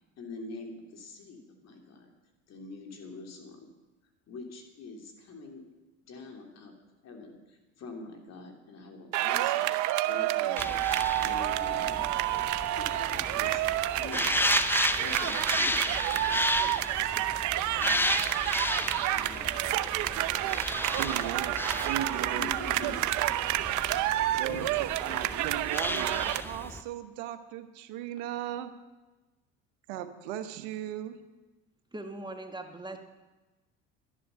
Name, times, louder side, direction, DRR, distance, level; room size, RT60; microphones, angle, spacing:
voice 1, 0.2-2.1 2.5-3.7 4.3-5.6 6.1-6.7 7.0-10.8 11.2-12.2 12.8-13.6 14.0-14.6 15.0-15.8 16.1-17.4 17.7-18.7 19.1-19.7 22.3-23.0 23.9-24.0 24.4-24.6 25.1-25.2, left 3 dB, 50° left, 3 dB, 3.0 m, -45 dB
sound 1, 9.1-26.4, right 14 dB, 60° right, 0.7 m, -29 dB
sound 2, 10.6-26.8, left 1 dB, 5° left, 0.7 m, -33 dB
voice 2, 21.0-21.6 21.9-22.5 24.4-24.7 25.0-28.7 29.9-31.2, right 11 dB, 75° right, 10 dB, 1.2 m, -37 dB
voice 3, 31.9-33.0, right 2 dB, 15° right, 5 dB, 1.6 m, -40 dB
11.0 x 11.0 x 6.8 m, 1.1 s
supercardioid pair, 80°, 34 cm